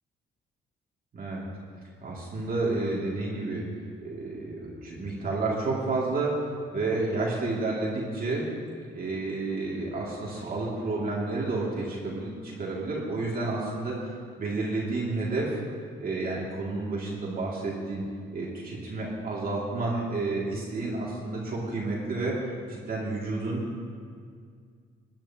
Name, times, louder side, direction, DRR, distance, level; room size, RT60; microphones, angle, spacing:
voice 1, 2.0-3.7 4.0-8.5 8.9-15.6 16.0-18.0 18.3-23.8, right 3 dB, 45° right, -5 dB, 2.5 m, -30 dB
18.5 x 10.5 x 2.9 m, 2.1 s
cardioid pair, 90°, 20 cm